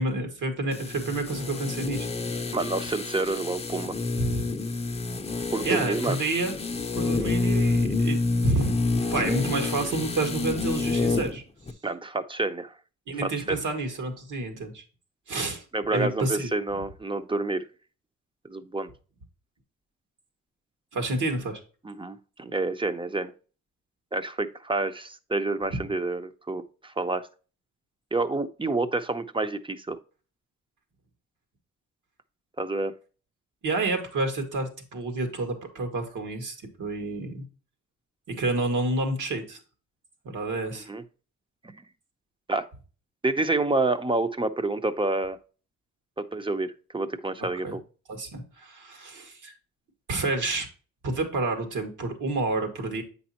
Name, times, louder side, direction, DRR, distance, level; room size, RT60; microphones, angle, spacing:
voice 1, 0.0-2.1 4.2-4.4 5.6-6.5 6.9-8.7 9.0-11.4 13.1-14.8 15.3-15.6 15.9-16.5 20.9-21.6 33.6-37.4 38.3-39.6 40.2-40.9 47.6-47.8 48.1-49.5 50.1-50.7 51.0-53.0, right 2 dB, 75° right, 5 dB, 2.0 m, -29 dB
sound 1, 0.7-11.4 11.7-11.8, left 3 dB, 20° left, 0.7 m, -28 dB
voice 2, 2.5-3.9 5.5-6.2 11.8-12.7 13.2-13.6 15.7-17.6 18.5-18.9 21.8-23.3 24.1-27.3 28.1-30.0 32.6-32.9 40.9-41.0 41.6-41.8 42.5-42.7 43.2-45.4 46.2-47.8, right 2 dB, 15° right, 11 dB, 0.7 m, -28 dB
8.4 x 5.4 x 2.9 m, 0.36 s
cardioid pair, 90°, 31 cm